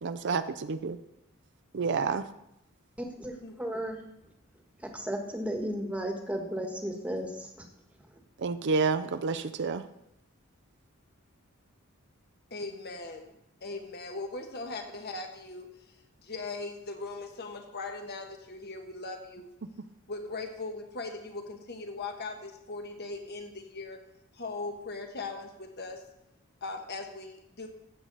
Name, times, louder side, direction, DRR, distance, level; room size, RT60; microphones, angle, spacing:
voice 1, 0.0-0.4 0.7-1.0 1.7-2.2 8.4-9.8, right 4 dB, 55° right, 13 dB, 0.5 m, -29 dB
voice 2, 3.0-4.0 4.8-7.6 8.0-8.2, equal, 5° right, 3 dB, 1.4 m, -35 dB
voice 3, 12.5-13.3 13.6-15.7 16.2-19.5 20.1-24.0 24.3-26.0 26.6-27.7, left 3 dB, 50° left, 4 dB, 1.4 m, -39 dB
15.5 x 7.7 x 4.1 m, 0.84 s
head